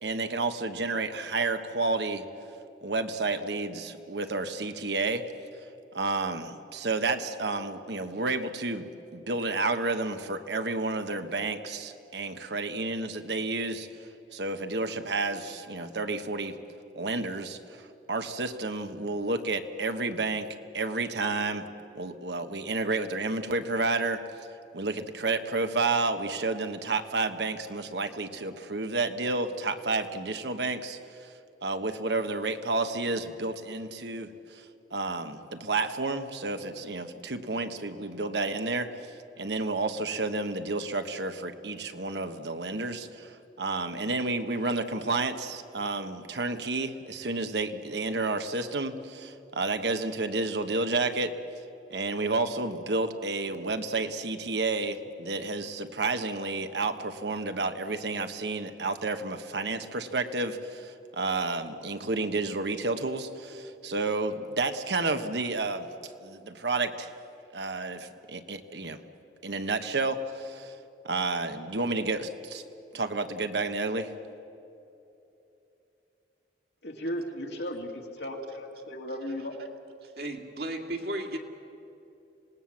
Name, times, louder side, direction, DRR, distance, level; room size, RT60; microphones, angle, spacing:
voice 1, 0.0-2.2 2.8-5.2 5.9-8.9 9.1-13.9 14.3-16.6 16.9-21.6 21.9-24.2 24.7-31.3 31.6-34.6 34.9-51.3 51.9-65.9 66.2-67.1 67.5-69.0 69.4-70.7 71.0-72.6 72.9-74.1, right 3 dB, 75° right, 8 dB, 1.3 m, -31 dB
voice 2, 76.8-79.6, equal, 75° left, 2 dB, 2.7 m, -36 dB
voice 3, 80.0-81.4, right 1 dB, 60° right, 3 dB, 2.2 m, -34 dB
26.5 x 19.0 x 7.4 m, 2.9 s
head